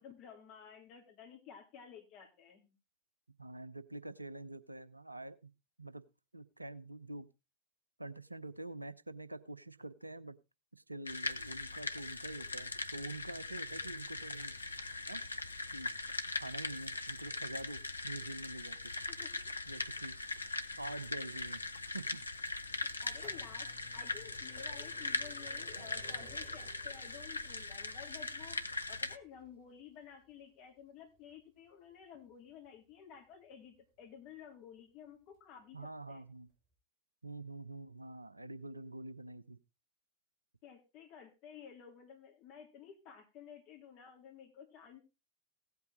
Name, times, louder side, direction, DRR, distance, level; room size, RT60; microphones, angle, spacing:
voice 1, 0.0-2.7 19.1-19.5 23.0-36.2 40.6-45.1, left 8 dB, 40° left, 3 dB, 3.6 m, -53 dB
voice 2, 3.4-5.5 5.8-6.0 6.3-7.3 8.0-10.4 10.7-14.5 15.1-15.2 15.7-15.9 16.3-18.9 19.7-20.1 20.8-21.6 21.9-22.2 35.7-36.5 37.2-39.6, right 2 dB, 85° right, 15 dB, 0.7 m, -46 dB
sound 1, 11.1-29.2, left 3 dB, 80° left, 0.8 m, -40 dB
sound 2, 22.9-34.6 35.4-35.5 36.4-36.5 36.7-36.8, right 2 dB, 35° right, 3.7 m, -61 dB
16.5 x 8.3 x 4.0 m, 0.27 s
figure-of-eight pair, 90°, 0 cm